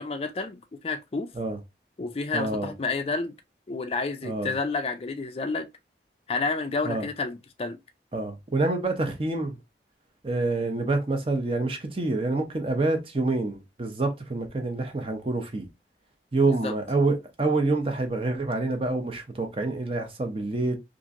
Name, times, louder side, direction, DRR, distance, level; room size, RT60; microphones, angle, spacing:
voice 1, 0.0-1.3 2.0-3.3 3.7-5.7 6.3-7.8 16.5-16.7, left 3 dB, 35° left, 0.4 m, -30 dB
voice 2, 2.3-2.7 4.2-4.5 6.8-7.1 8.1-9.6 10.2-15.7 16.3-20.8, right 2 dB, 30° right, 0.6 m, -27 dB
2.9 x 2.5 x 2.5 m
head